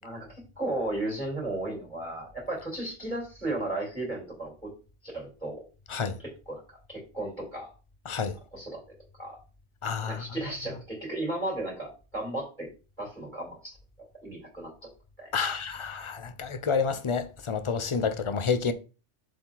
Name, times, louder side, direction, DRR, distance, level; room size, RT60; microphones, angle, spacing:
voice 1, 0.0-4.7 5.0-5.7 6.2-6.6 6.9-7.7 8.5-8.8 9.2-9.4 10.0-12.7 13.0-13.8 14.2-14.7 15.2-15.6, right 1 dB, 5° left, 3.9 m, -34 dB
voice 2, 8.1-8.4 9.8-10.2 15.3-18.7, left 5 dB, 30° left, 0.7 m, -29 dB
7.2 x 5.0 x 4.0 m
omnidirectional pair, 1.3 m